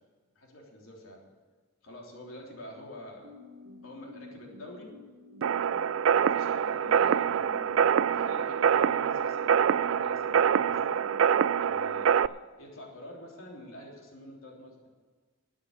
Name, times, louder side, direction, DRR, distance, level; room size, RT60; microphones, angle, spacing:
voice 1, 0.3-1.2 1.8-3.3 3.8-4.9 6.2-7.7 8.1-11.1 11.6-14.9, left 1 dB, 70° left, -1 dB, 3.5 m, -47 dB
sound 1, 3.1-12.1, left 2 dB, 90° right, 2.1 m, -50 dB
sound 2, 5.4-12.3, right 8 dB, 70° right, 0.3 m, -25 dB
sound 3, 6.7-10.6, left 1 dB, 35° left, 1.5 m, -52 dB
12.5 x 8.8 x 8.8 m, 1.4 s
head